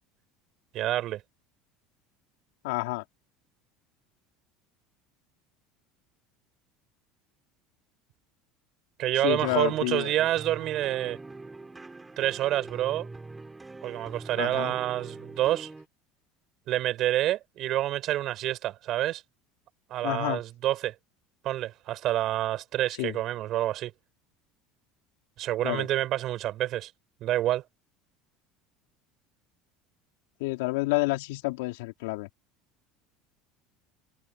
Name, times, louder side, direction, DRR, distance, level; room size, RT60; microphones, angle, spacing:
voice 1, 0.7-1.2 9.0-11.2 12.2-13.1 13.8-15.7 16.7-19.2 19.9-20.9 21.4-23.9 25.4-26.9 27.2-27.6, right 14 dB, 45° right, 5.8 m, -28 dB
voice 2, 2.6-3.0 9.2-10.1 14.4-14.8 20.0-20.4 23.0-23.2 25.6-25.9 30.4-32.3, left 22 dB, 90° left, 4.6 m, -29 dB
sound 1, 9.3-15.9, right 3 dB, 10° right, 4.1 m, -43 dB
cardioid pair, 145°, 0 cm